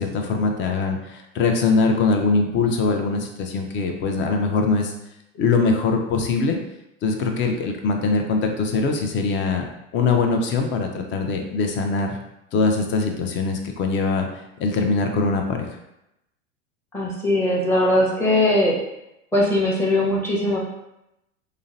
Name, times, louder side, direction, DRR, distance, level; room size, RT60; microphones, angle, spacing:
voice 1, 0.0-4.9 5.3-6.6 7.0-9.6 9.9-12.2 12.5-14.3 14.6-15.6, left 4 dB, 30° left, 4 dB, 0.5 m, -22 dB
voice 2, 16.9-18.8 19.3-20.6, left 1 dB, 5° left, -4 dB, 0.8 m, -20 dB
3.7 x 2.1 x 2.5 m, 0.86 s
hypercardioid pair, 90°, 39 cm